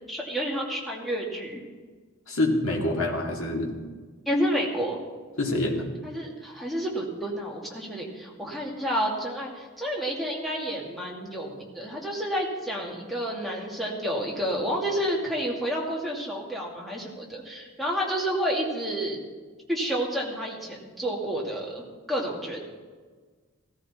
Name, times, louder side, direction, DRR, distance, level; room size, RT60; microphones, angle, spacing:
voice 1, 0.1-1.6 4.3-5.0 6.0-19.2 19.7-22.6, equal, ahead, -3 dB, 2.2 m, -30 dB
voice 2, 2.3-3.7 5.4-5.8, left 1 dB, 85° left, 0 dB, 2.2 m, -26 dB
16.5 x 14.0 x 4.3 m, 1.5 s
head